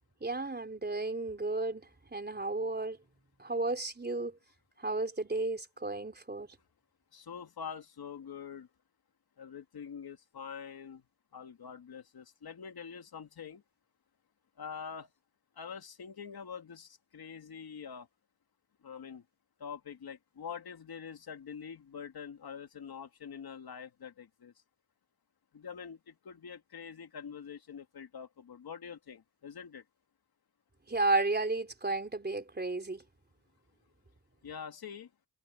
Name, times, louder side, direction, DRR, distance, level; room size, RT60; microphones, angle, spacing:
voice 1, 0.2-1.8 2.1-3.0 3.4-4.3 4.8-6.5 30.9-33.0, right 3 dB, 25° right, 3.9 m, -33 dB
voice 2, 7.1-8.7 9.4-11.0 11.3-13.6 14.6-15.1 15.6-18.1 18.8-19.2 19.6-24.5 25.5-29.8 34.4-35.1, left 7 dB, 75° left, 2.6 m, -45 dB
cardioid pair, 70°, 37 cm